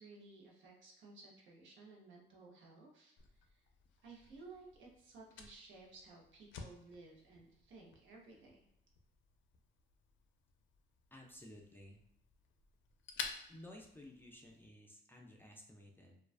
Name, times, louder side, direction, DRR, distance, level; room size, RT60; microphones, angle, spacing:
voice 1, 0.0-3.6 4.0-8.6, right 3 dB, 75° right, -2 dB, 0.8 m, -57 dB
Fire, 3.2-14.7, left 5 dB, 70° left, 0.4 m, -53 dB
voice 2, 11.1-12.0 13.5-16.2, left 1 dB, 10° left, -1 dB, 0.4 m, -55 dB
2.3 x 2.2 x 2.4 m, 0.79 s
cardioid pair, 90°, 20 cm